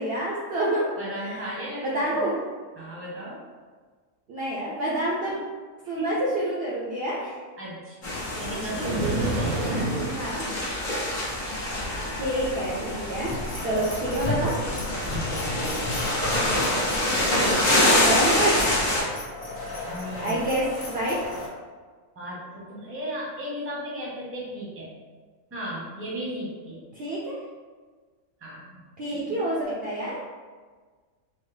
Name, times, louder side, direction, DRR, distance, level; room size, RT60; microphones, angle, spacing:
voice 1, 0.0-0.9 1.2-1.4 1.8-2.3 4.3-5.4 5.9-7.3 10.0-10.5 12.1-13.3 13.6-14.5 17.3-17.7 18.0-18.7 20.2-21.2 26.9-27.4 29.0-30.2, right 1 dB, 60° right, -6 dB, 0.7 m, -28 dB
voice 2, 1.0-2.3 2.7-3.4 5.8-6.2 7.6-8.1 8.4-9.7 10.1-10.4 15.0-15.6 19.9-20.4 22.2-24.9 25.5-26.8 28.4-28.8 29.3-29.4, equal, 10° right, -6 dB, 0.7 m, -35 dB
sound 1, 8.0-19.0, left 1 dB, 45° left, 0.8 m, -26 dB
sound 2, 8.7-10.3, right 2 dB, 80° right, 1.1 m, -28 dB
sound 3, 13.3-21.5, left 2 dB, 65° left, 1.2 m, -35 dB
3.8 x 2.0 x 3.2 m, 1.5 s
omnidirectional pair, 1.5 m